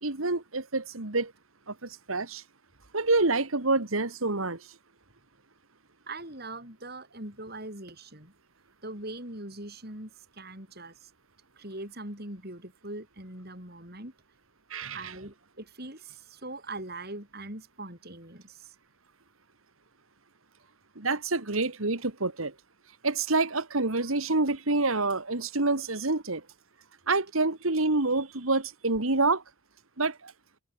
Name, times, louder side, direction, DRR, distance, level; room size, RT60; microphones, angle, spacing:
voice 1, 0.0-1.3 1.7-2.4 2.9-4.7 14.7-15.1 21.0-22.5 23.0-26.4 27.1-29.4 30.0-30.3, right 3 dB, 85° right, 2.4 m, -27 dB
voice 2, 6.1-8.3 8.8-11.1 11.6-14.1 14.9-18.7, right 2 dB, 50° right, 8.0 m, -41 dB
head